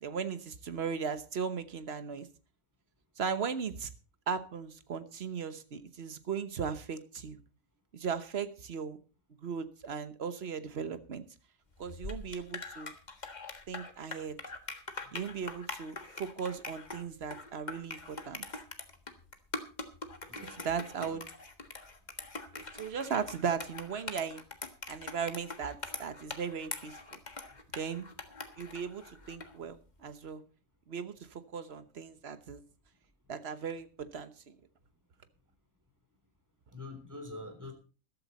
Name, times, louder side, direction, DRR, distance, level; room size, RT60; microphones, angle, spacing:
voice 1, 0.0-2.3 3.2-3.9 4.3-7.4 7.9-9.0 9.4-11.2 11.8-12.9 13.7-14.4 15.1-18.5 20.5-21.2 22.5-24.4 24.9-27.0 27.7-28.1 28.6-30.4 30.9-32.6 33.3-33.9 34.1-34.5, right 6 dB, 50° right, 11 dB, 1.3 m, -37 dB
sound 1, 11.8-29.6, left 3 dB, 30° left, 1.6 m, -43 dB
voice 2, 20.2-20.6 21.0-21.2 36.7-37.7, left 2 dB, 10° right, 5 dB, 3.3 m, -45 dB
14.0 x 12.5 x 4.2 m, 0.37 s
omnidirectional pair, 1.4 m